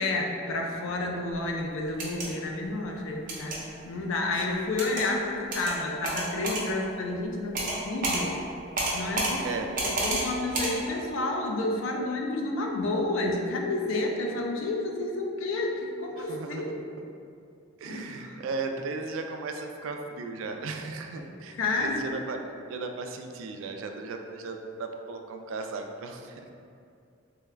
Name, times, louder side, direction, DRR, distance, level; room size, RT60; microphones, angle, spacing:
voice 1, 0.0-8.4 8.9-9.5 9.8-16.8 17.9-18.4 21.5-22.1, left 2 dB, 80° left, 1 dB, 0.4 m, -30 dB
sound 1, 1.9-2.3 3.3-3.6 4.8-5.0 5.5-5.7 6.0-6.6 7.5-7.8 8.0-8.2 8.8-9.3 9.8-10.2 10.5-10.7, right 2 dB, 45° right, 0.6 m, -29 dB
voice 2, 16.2-17.1 17.8-22.4 22.7-26.5, right 3 dB, 85° right, 5 dB, 0.3 m, -36 dB
3.5 x 2.3 x 3.2 m, 2.4 s
head